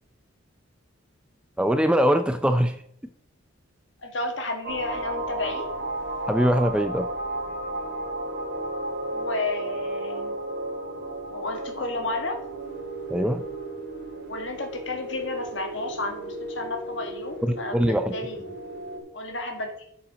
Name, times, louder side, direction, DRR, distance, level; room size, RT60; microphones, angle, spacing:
voice 1, 1.6-2.8 6.3-7.1 13.1-13.4 17.4-18.1, equal, 5° right, 8 dB, 0.4 m, -22 dB
voice 2, 4.0-5.7 9.1-10.4 11.3-12.4 14.3-18.4 19.1-19.7, left 2 dB, 60° left, 4 dB, 1.9 m, -32 dB
sound 1, 4.6-19.0, right 1 dB, 55° right, 2.3 m, -34 dB
7.7 x 7.0 x 5.0 m, 0.70 s
head